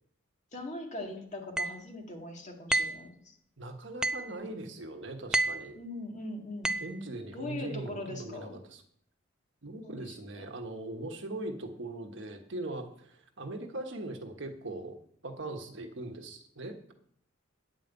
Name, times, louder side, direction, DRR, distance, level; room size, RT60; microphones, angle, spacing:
voice 1, 0.5-3.3 5.7-6.7 7.3-8.5 9.8-10.5, left 2 dB, 35° left, 2 dB, 2.0 m, -41 dB
sound 1, 1.6-1.8 2.7-3.0 4.0-4.3 5.3-5.7 6.6-7.0, right 2 dB, 5° right, 0.4 m, -29 dB
voice 2, 3.6-5.8 6.8-8.8 9.6-15.0 15.2-16.9, right 2 dB, 60° right, 4 dB, 1.3 m, -40 dB
9.9 x 5.3 x 8.1 m, 0.64 s
head